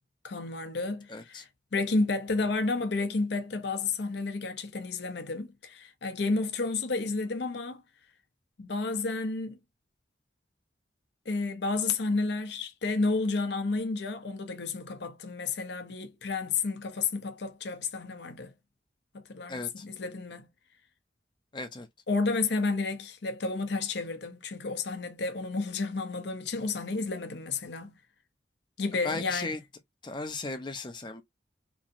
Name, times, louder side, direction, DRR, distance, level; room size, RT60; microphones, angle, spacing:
voice 1, 0.2-7.8 8.6-9.6 11.3-18.5 19.1-20.5 22.1-27.9 28.8-29.5, left 3 dB, 65° left, 0.6 m, -31 dB
voice 2, 1.1-1.4 19.5-19.8 21.5-21.9 29.0-29.6 30.0-31.2, left 3 dB, 25° left, 0.5 m, -36 dB
3.1 x 2.7 x 2.5 m
head